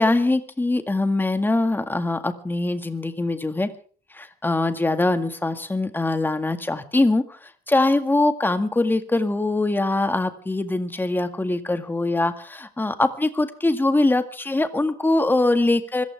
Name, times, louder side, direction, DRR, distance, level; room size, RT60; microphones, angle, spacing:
voice 1, 0.0-3.7 4.1-16.0, left 2 dB, 10° left, 9 dB, 1.9 m, -22 dB
25.5 x 14.5 x 3.5 m, 0.41 s
cardioid pair, 110°, 17 cm